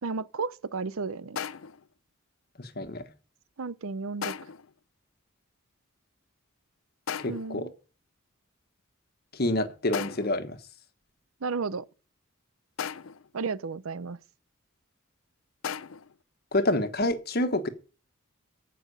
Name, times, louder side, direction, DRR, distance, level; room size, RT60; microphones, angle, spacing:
voice 1, 0.0-1.4 3.6-4.4 7.3-7.7 11.4-11.8 13.3-14.2, right 4 dB, 80° right, 0.7 m, -33 dB
sound 1, 1.4-1.9 4.2-4.7 7.1-7.6 9.9-10.4 12.8-13.3 15.6-16.2, left 7 dB, 75° left, 0.6 m, -36 dB
voice 2, 2.6-3.0 7.2-7.7 9.4-10.6 16.5-17.7, left 1 dB, 45° left, 1.3 m, -27 dB
14.5 x 6.1 x 6.9 m
head